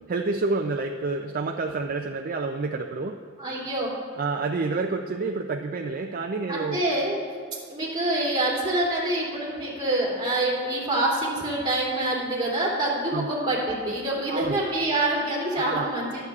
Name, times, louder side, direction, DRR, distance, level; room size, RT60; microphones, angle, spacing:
voice 1, 0.1-3.2 4.2-6.8 13.1-13.3 14.3-14.6 15.6-15.9, right 3 dB, 45° right, 3 dB, 0.5 m, -28 dB
voice 2, 3.4-3.9 6.5-7.2 7.7-16.2, right 1 dB, 25° right, -5 dB, 2.8 m, -26 dB
22.5 x 7.9 x 2.4 m, 2.1 s
head